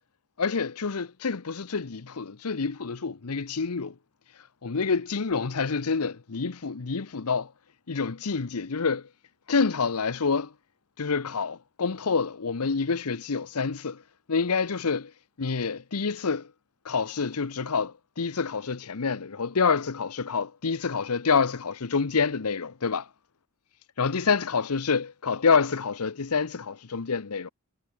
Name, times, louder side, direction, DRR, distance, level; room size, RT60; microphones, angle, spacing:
voice 1, 0.4-3.9 4.6-7.5 7.9-9.1 9.5-10.5 11.0-14.0 14.3-15.1 15.4-16.5 16.8-23.1 24.0-27.5, left 5 dB, 80° left, 0.9 m, -27 dB
head